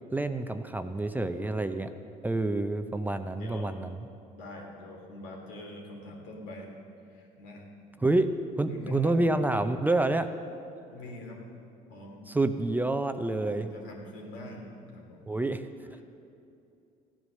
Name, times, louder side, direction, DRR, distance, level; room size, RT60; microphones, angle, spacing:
voice 1, 0.1-1.9 2.2-4.0 8.0-8.3 8.6-10.3 12.3-13.7 15.3-15.6, right 2 dB, 10° right, 9 dB, 0.6 m, -28 dB
voice 2, 3.4-3.8 4.3-6.7 7.1-7.6 8.6-9.3 10.9-11.4 11.9-12.2 13.4-15.3 16.0-16.1, left 2 dB, 85° left, 0 dB, 3.0 m, -44 dB
15.5 x 9.6 x 6.5 m, 2.7 s
supercardioid pair, 90°, 17 cm